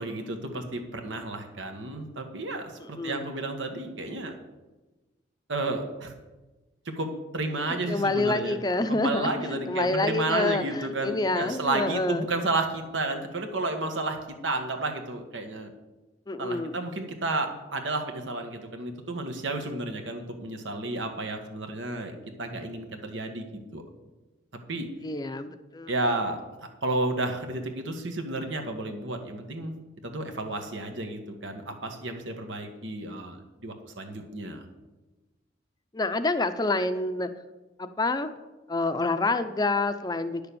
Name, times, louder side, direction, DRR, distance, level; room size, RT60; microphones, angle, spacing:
voice 1, 0.0-4.3 5.5-6.1 6.8-8.6 8.9-15.7 16.4-23.5 23.7-23.8 24.7-24.9 25.9-29.8 30.0-34.6, right 2 dB, 85° right, 5 dB, 1.6 m, -32 dB
voice 2, 2.8-3.2 7.9-9.3 9.7-12.3 16.3-16.8 25.0-25.9 35.9-37.3 37.8-38.3 38.7-40.5, left 2 dB, 20° left, 10 dB, 0.5 m, -27 dB
10.0 x 6.8 x 6.9 m, 1.1 s
head